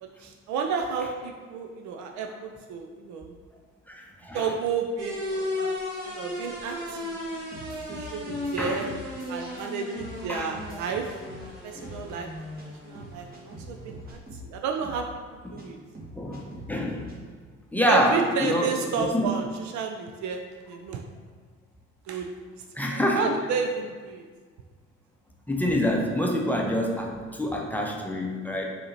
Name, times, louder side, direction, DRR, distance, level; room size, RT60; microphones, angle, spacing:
voice 1, 0.0-3.3 4.3-5.8 6.0-7.2 7.7-8.9 9.3-11.1 11.4-12.3 12.7-15.8 17.9-20.4 20.7-21.0 22.1-24.2, right 5 dB, 50° right, 4 dB, 0.5 m, -32 dB
voice 2, 3.9-4.5 8.6-8.8 10.3-10.5 11.7-11.9 15.5-15.6 16.2-16.4 16.7-17.1 17.7-19.3 22.7-23.3 25.5-28.7, equal, 5° left, -1 dB, 0.7 m, -26 dB
sound 1, 5.0-14.1, left 1 dB, 80° right, 1.0 m, -36 dB
sound 2, 7.3-8.5 8.8-9.7 9.9-11.5 11.8-12.0 12.6-12.7 12.9-14.5 14.8-15.0 15.6-15.7 15.9-17.1, right 1 dB, 25° right, 1.2 m, -43 dB
6.3 x 2.8 x 2.9 m, 1.5 s
figure-of-eight pair, 50°, 37 cm